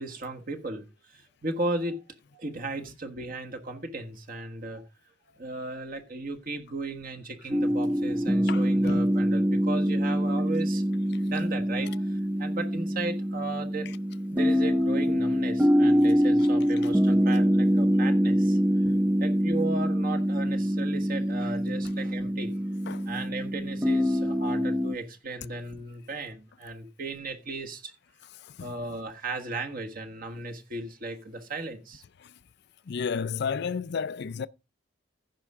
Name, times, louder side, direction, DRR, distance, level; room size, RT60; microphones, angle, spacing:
voice 1, 0.0-2.0 2.3-4.8 5.4-10.8 11.2-13.9 14.3-18.6 19.2-22.5 23.1-27.9 28.6-32.0, right 2 dB, 50° right, 1.4 m, -36 dB
sound 1, 7.5-25.0, equal, 10° right, 0.4 m, -25 dB
voice 2, 8.5-9.0 9.9-10.0 18.8-19.0 22.9-23.1 28.4-28.7 32.2-32.3 32.9-34.5, left 6 dB, 60° left, 0.4 m, -33 dB
15.0 x 5.6 x 3.6 m
head